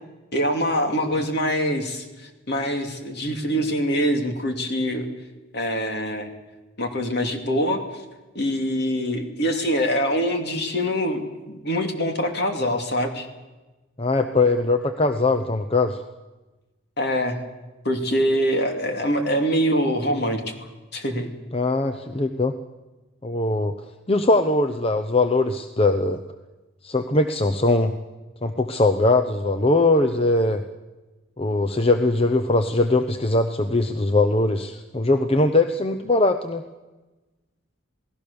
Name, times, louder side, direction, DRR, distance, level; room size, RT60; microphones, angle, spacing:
voice 1, 0.3-5.1 5.5-6.3 6.8-7.8 8.3-13.3 17.0-17.4 17.8-20.5 20.9-21.3, equal, 55° left, 5 dB, 2.8 m, -24 dB
voice 2, 14.0-16.0 21.5-22.6 23.2-23.8 24.1-26.2 26.8-27.9 28.4-30.6 31.4-36.6, left 2 dB, 30° left, 6 dB, 0.8 m, -21 dB
28.0 x 18.5 x 7.0 m, 1.2 s
head